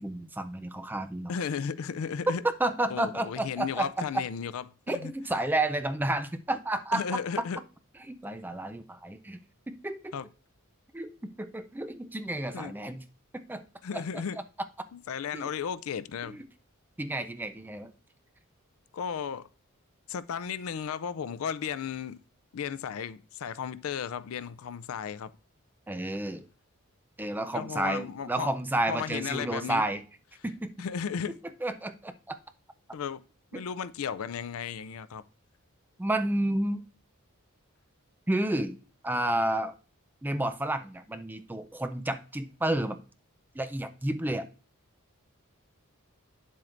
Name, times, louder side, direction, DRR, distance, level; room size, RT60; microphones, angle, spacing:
voice 1, 0.0-1.3 2.6-3.9 4.9-7.4 8.1-9.4 9.7-10.1 10.9-13.0 13.3-13.6 13.9-14.0 15.3-15.4 16.3-16.4 17.0-17.9 25.9-26.4 27.2-30.0 30.4-30.7 31.6-32.4 36.0-36.8 38.3-38.8 39.0-39.7 40.2-43.0 43.5-44.5, right 1 dB, 10° right, 0.4 m, -31 dB
voice 2, 1.3-2.4 2.9-5.1 6.9-7.6 10.1-10.3 12.5-12.7 13.8-14.4 14.9-16.4 18.9-19.5 20.1-22.2 22.5-25.3 27.5-28.5 28.9-29.8 30.8-31.4 32.9-33.2 33.5-35.2, left 7 dB, 75° left, 0.4 m, -34 dB
9.1 x 7.6 x 2.5 m
head